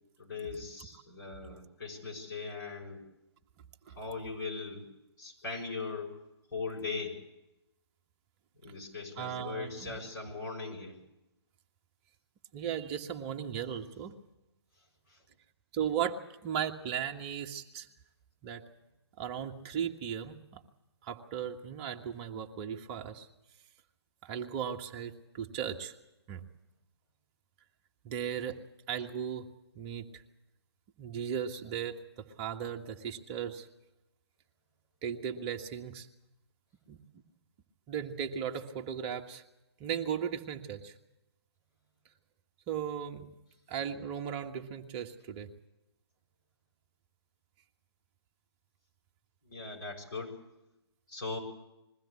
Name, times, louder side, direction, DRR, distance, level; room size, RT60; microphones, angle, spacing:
voice 1, 0.2-3.0 4.0-4.8 5.2-6.2 6.5-7.2 8.6-11.0 49.4-50.3 51.1-51.4, left 4 dB, 45° left, 0 dB, 6.6 m, -39 dB
voice 2, 9.2-10.0 12.5-14.1 15.7-16.2 16.4-17.9 18.4-18.6 19.2-20.6 21.0-23.3 24.2-25.9 26.3-26.4 28.0-28.6 28.9-29.5 29.7-30.1 31.0-33.7 35.0-36.1 36.9-37.0 37.9-39.4 39.8-40.9 42.7-43.3 43.7-45.5, right 8 dB, 25° right, 3 dB, 1.4 m, -36 dB
21.5 x 15.5 x 8.5 m, 0.95 s
figure-of-eight pair, 140°, 14 cm